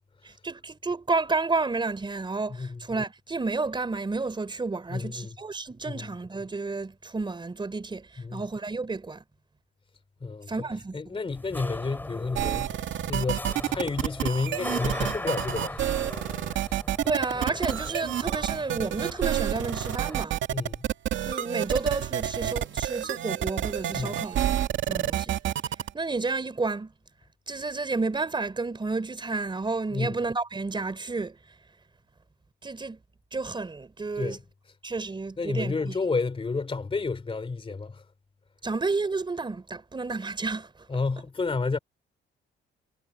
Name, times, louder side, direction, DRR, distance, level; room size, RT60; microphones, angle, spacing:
voice 1, 0.2-9.2 10.5-11.2 17.0-20.4 21.3-24.6 24.9-25.4 25.9-26.9 27.5-31.4 32.6-33.0 33.3-34.4 34.8-36.0 38.6-40.9, right 3 dB, 25° right, 3.7 m, -31 dB
voice 2, 4.9-5.3 5.9-6.0 8.2-8.4 10.2-10.5 10.9-15.8 16.6-16.7 20.5-20.9 23.9-24.1 29.9-30.1 34.1-34.4 35.4-38.0 40.9-41.8, left 4 dB, 25° left, 2.9 m, -31 dB
sound 1, 11.3-20.2, left 1 dB, 10° left, 3.8 m, -39 dB
sound 2, 12.4-25.9, right 11 dB, 75° right, 2.3 m, -29 dB
cardioid pair, 90°, 20 cm